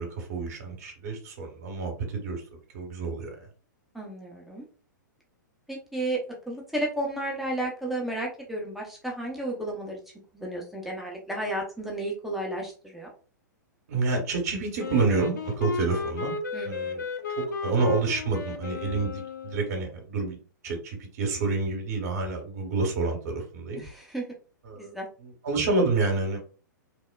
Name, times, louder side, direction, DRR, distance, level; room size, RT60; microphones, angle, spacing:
voice 1, 0.0-2.4 2.7-3.4 13.9-16.3 16.6-17.0 17.4-20.4 20.6-23.8 24.6-24.9 25.2-26.4, right 3 dB, 50° right, 2 dB, 0.9 m, -28 dB
voice 2, 3.9-4.6 5.7-10.0 10.3-13.1 16.5-17.1 23.8-24.2 24.8-25.1, right 1 dB, ahead, -3 dB, 0.6 m, -33 dB
Wind instrument woodwind instrument, 14.8-19.8, left 4 dB, 65° left, 0.5 m, -34 dB
3.1 x 2.1 x 2.2 m, 0.38 s
figure-of-eight pair, 110°, 11 cm